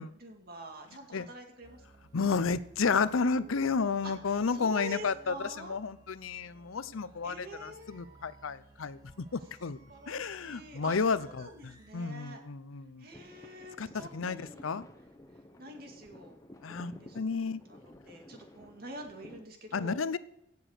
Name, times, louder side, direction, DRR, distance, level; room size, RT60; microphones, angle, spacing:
voice 1, 0.0-1.8 4.0-4.1 4.5-5.8 7.2-8.2 9.9-12.4 13.0-14.7 15.6-16.4 16.7-17.8 18.1-20.2, right 1 dB, 50° right, 3 dB, 2.3 m, -46 dB
sound 1, 1.6-11.9, right 3 dB, 20° right, 1.8 m, -58 dB
voice 2, 2.1-9.8 10.1-13.1 13.8-14.9 16.6-17.6 19.7-20.2, left 5 dB, 85° left, 16 dB, 0.6 m, -32 dB
sound 2, 13.1-19.5, left 1 dB, 15° left, 0.9 m, -53 dB
16.5 x 7.0 x 6.5 m, 0.82 s
head